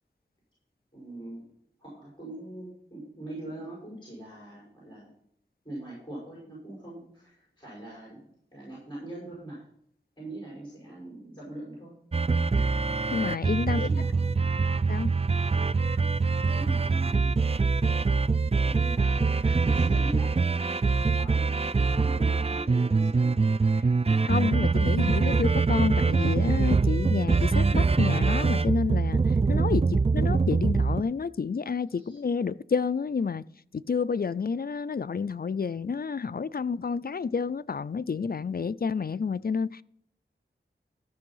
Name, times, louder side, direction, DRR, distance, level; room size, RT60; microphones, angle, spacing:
voice 1, 0.9-1.5 1.8-5.1 5.6-8.2 8.5-9.6 10.2-12.0 12.4-12.6 13.6-14.5 16.2-17.4 18.6-20.5 21.2-23.3 31.9-32.2, right 1 dB, 25° left, 5.4 m, -42 dB
sound 1, 12.1-31.0, right 4 dB, 30° right, 0.4 m, -24 dB
voice 2, 13.1-13.9 14.9-15.1 24.2-29.2 29.5-33.4 33.7-39.8, left 5 dB, 50° left, 0.4 m, -29 dB
13.5 x 6.2 x 5.6 m
wide cardioid pair, 45°, 20 cm